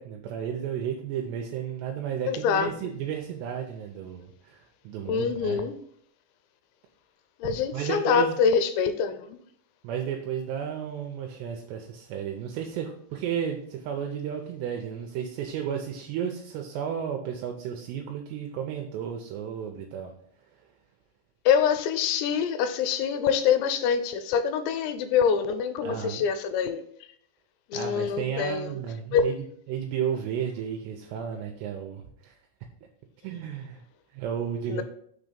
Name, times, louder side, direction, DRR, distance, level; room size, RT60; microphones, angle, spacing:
voice 1, 0.0-5.7 7.7-8.4 9.8-20.1 25.8-26.2 27.7-29.3 29.7-32.4 33.2-33.8 34.1-34.8, right 8 dB, 80° right, 2 dB, 2.6 m, -33 dB
voice 2, 2.3-2.9 5.1-5.8 7.4-9.4 21.5-26.9 27.7-28.8 29.1-29.3 34.7-34.8, left 7 dB, 85° left, 10 dB, 2.8 m, -25 dB
6.2 x 4.0 x 5.1 m, 0.65 s
omnidirectional pair, 5.2 m